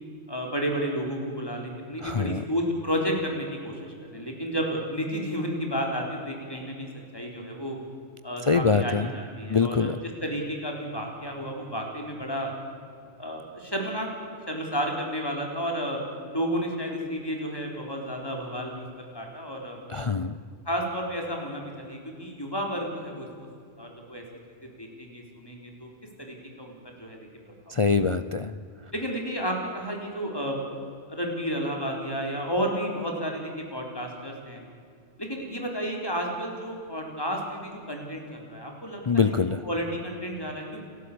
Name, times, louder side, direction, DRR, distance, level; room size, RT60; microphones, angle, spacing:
voice 1, 0.3-3.7 4.1-6.9 7.1-7.8 8.2-9.9 10.2-12.5 13.2-19.8 20.7-23.3 23.8-24.2 24.8-25.9 26.2-27.2 27.7-27.8 28.9-30.8 31.1-34.6 35.2-39.3 39.6-40.8, equal, 20° left, 1 dB, 4.1 m, -32 dB
voice 2, 2.0-2.4 8.5-9.1 9.5-10.0 19.9-20.4 27.7-28.5 39.0-39.6, left 5 dB, 35° left, 11 dB, 0.5 m, -24 dB
29.5 x 13.0 x 8.6 m, 2.4 s
omnidirectional pair, 1.3 m